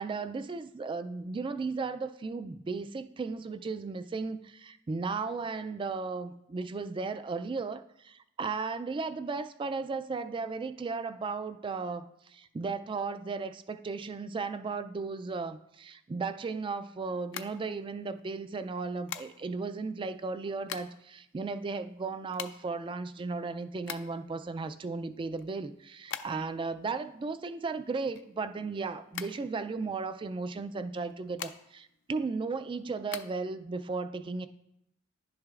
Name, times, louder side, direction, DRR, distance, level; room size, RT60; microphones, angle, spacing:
voice 1, 0.0-34.5, right 4 dB, 25° right, 11 dB, 0.3 m, -35 dB
sound 1, 17.2-18.2 19.1-19.7 20.3-21.1 21.4-21.5 21.7-24.3 24.7-26.6 26.9-28.7 29.1-30.1 30.9-31.9 32.3-33.2, left 10 dB, 60° left, 0.4 m, -42 dB
10.5 x 6.3 x 2.4 m, 0.81 s
head